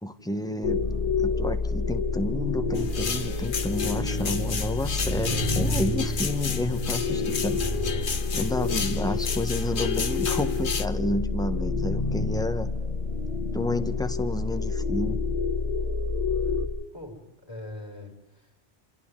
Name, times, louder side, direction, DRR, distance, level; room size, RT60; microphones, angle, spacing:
voice 1, 0.0-0.8 1.2-7.6 8.3-12.7 13.5-15.2, left 1 dB, 5° left, 8 dB, 1.1 m, -30 dB
sound 1, 0.6-16.7, left 4 dB, 35° left, 1.5 m, -28 dB
sound 2, 1.8-8.2, equal, 65° right, 3.6 m, -37 dB
sound 3, 2.8-10.9, left 6 dB, 50° left, 1.1 m, -33 dB
voice 2, 8.5-8.8 16.4-16.6 16.9-18.7, left 1 dB, 20° right, 0 dB, 6.5 m, -43 dB
28.5 x 27.0 x 3.9 m, 0.97 s
omnidirectional pair, 1.2 m